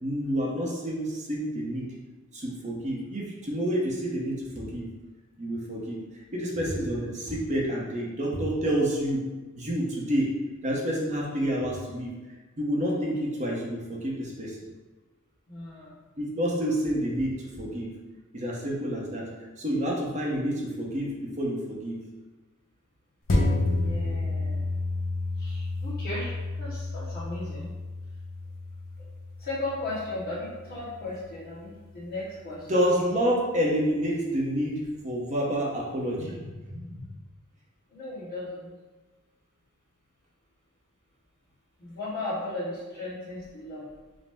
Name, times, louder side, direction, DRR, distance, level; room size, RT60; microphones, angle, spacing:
voice 1, 0.0-1.9 2.3-4.9 5.4-6.0 6.3-9.3 9.6-10.3 10.6-12.1 12.6-14.5 16.2-17.9 18.3-19.3 19.6-22.0 32.7-37.0, equal, 30° right, -3 dB, 0.7 m, -28 dB
voice 2, 15.5-15.9 23.7-24.7 25.4-27.7 29.4-32.7 37.9-38.7 41.8-43.9, left 2 dB, 45° left, -13 dB, 1.4 m, -36 dB
sound 1, 23.3-32.1 32.5-32.6, left 2 dB, 60° left, 0.7 m, -31 dB
5.1 x 2.0 x 3.4 m, 1.2 s
head